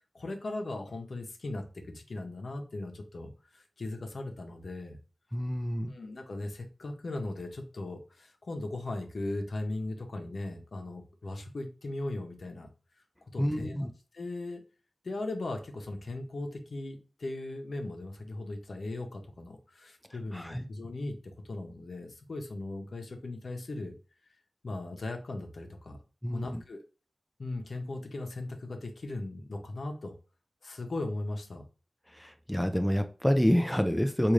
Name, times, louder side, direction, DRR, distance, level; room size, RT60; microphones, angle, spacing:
voice 1, 0.1-5.0 5.9-12.7 13.3-13.8 14.1-14.6 15.0-23.9 24.6-26.0 26.3-26.8 27.4-30.1 30.6-31.6, left 2 dB, 75° left, 3 dB, 0.8 m, -38 dB
voice 2, 5.3-5.9 13.4-13.9 20.3-20.6 26.2-26.6 32.1-34.3, equal, 5° left, 7 dB, 0.4 m, -28 dB
3.7 x 2.5 x 3.1 m, 0.35 s
wide cardioid pair, 65°, 0 cm